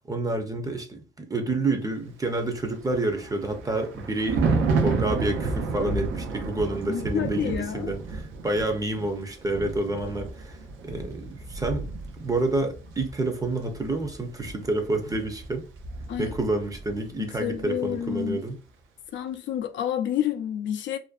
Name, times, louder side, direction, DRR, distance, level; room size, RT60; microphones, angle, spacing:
voice 1, 0.1-10.6 10.8-11.9 12.2-15.6 16.2-18.6, right 2 dB, 20° right, 0.5 m, -29 dB
Thunder, 2.5-17.1 17.3-17.6, right 4 dB, 80° right, 0.5 m, -32 dB
voice 2, 6.9-7.9 16.1-16.3 17.2-18.4 19.1-21.0, left 10 dB, 70° left, 0.4 m, -29 dB
2.5 x 2.1 x 2.3 m
cardioid pair, 90°, 20 cm